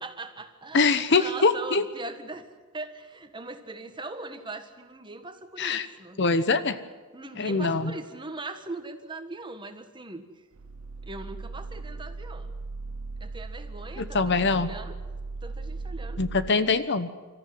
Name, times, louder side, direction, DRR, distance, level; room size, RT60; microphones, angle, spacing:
voice 1, 0.0-2.5 2.7-6.2 7.1-10.3 11.0-12.5 13.2-15.0 15.4-16.2, right 2 dB, 20° right, 7 dB, 1.5 m, -40 dB
voice 2, 0.7-1.8 5.6-5.9 6.2-6.8 7.4-7.9 14.0-14.7 16.2-17.1, left 4 dB, 55° left, 12 dB, 1.0 m, -23 dB
sound 1, 10.5-16.5, right 3 dB, 70° right, 0.7 m, -38 dB
25.5 x 14.0 x 9.4 m, 1.3 s
head